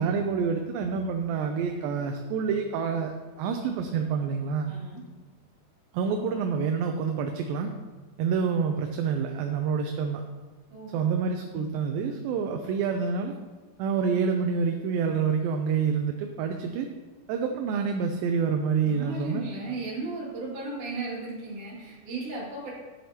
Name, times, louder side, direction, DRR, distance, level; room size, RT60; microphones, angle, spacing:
voice 1, 0.0-4.7 5.9-7.7 8.2-10.2 10.9-13.4 13.8-16.9 17.3-19.5, right 6 dB, 80° right, 4 dB, 2.3 m, -27 dB
voice 2, 4.7-5.0 10.7-11.1 18.8-22.7, right 3 dB, 60° right, -5 dB, 3.6 m, -35 dB
11.5 x 7.4 x 2.8 m, 1.3 s
omnidirectional pair, 4.2 m